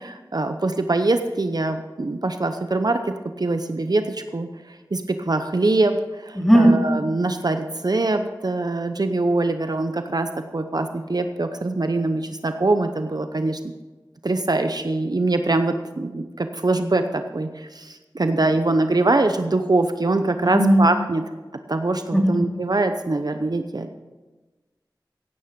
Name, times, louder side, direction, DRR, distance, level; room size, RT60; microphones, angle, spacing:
voice 1, 0.0-13.6 14.2-21.2 21.7-24.0, right 2 dB, 55° right, 7 dB, 0.8 m, -23 dB
voice 2, 6.4-6.9 20.4-20.9 22.1-22.4, right 1 dB, 5° left, 1 dB, 2.6 m, -16 dB
16.0 x 9.6 x 5.3 m, 1.2 s
wide cardioid pair, 50°, 8 cm